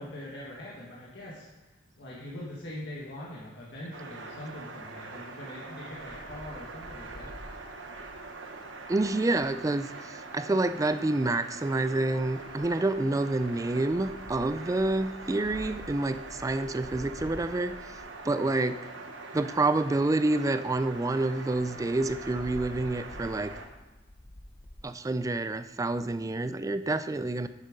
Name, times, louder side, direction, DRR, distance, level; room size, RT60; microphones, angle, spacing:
voice 1, 0.0-1.5 2.0-7.6 10.5-10.6, left 1 dB, 65° left, -6 dB, 1.7 m, -42 dB
sound 1, 3.9-23.7, right 3 dB, 85° right, 1.1 m, -43 dB
Wind, 6.0-9.6 10.7-11.1 11.8-18.8 19.4-19.5 19.7-19.8 20.2-20.3 20.6-20.7 20.9-21.0 21.5-24.8, left 1 dB, 45° left, 0.8 m, -49 dB
voice 2, 8.9-17.8 18.2-18.8 19.3-23.5 24.8-27.5, right 2 dB, 15° right, 12 dB, 0.3 m, -28 dB
9.6 x 7.2 x 5.2 m, 1.1 s
head